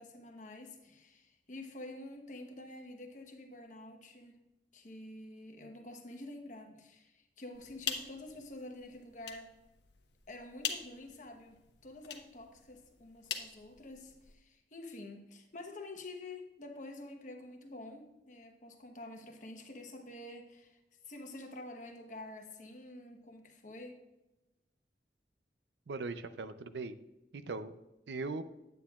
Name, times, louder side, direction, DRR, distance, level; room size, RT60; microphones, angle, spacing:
voice 1, 0.0-4.4 4.7-9.5 10.3-20.8 21.0-24.0, left 2 dB, 45° left, 4 dB, 1.0 m, -48 dB
sound 1, 7.5-14.4, left 8 dB, 70° left, 0.9 m, -44 dB
voice 2, 25.9-27.0 27.3-27.8 28.1-28.4, right 3 dB, 75° right, 11 dB, 0.5 m, -39 dB
9.2 x 9.0 x 2.4 m, 0.94 s
head